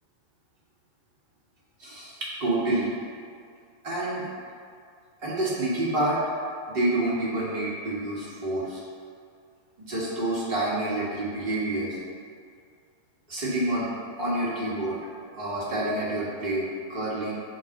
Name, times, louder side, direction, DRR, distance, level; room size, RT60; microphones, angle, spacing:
voice 1, 1.8-2.9 3.8-4.3 5.2-6.2 6.7-8.8 9.8-12.0 13.3-13.9 14.2-15.0 15.3-17.3, right 1 dB, 45° right, -7 dB, 1.3 m, -28 dB
5.2 x 2.1 x 4.1 m, 2.2 s
figure-of-eight pair, 90°, 0 cm